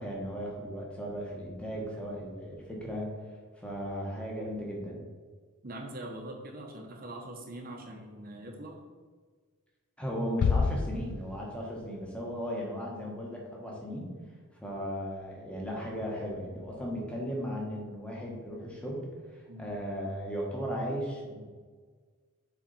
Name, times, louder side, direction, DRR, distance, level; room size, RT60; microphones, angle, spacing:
voice 1, 0.0-3.1 3.6-5.0 10.0-14.1 14.6-19.0 19.3-21.4, equal, 5° left, -3 dB, 1.3 m, -36 dB
voice 2, 5.6-8.8 19.5-19.7, right 1 dB, 40° right, 2 dB, 1.0 m, -42 dB
sound 1, 10.4-12.0, left 5 dB, 90° left, 0.3 m, -29 dB
7.2 x 4.1 x 4.2 m, 1.5 s
head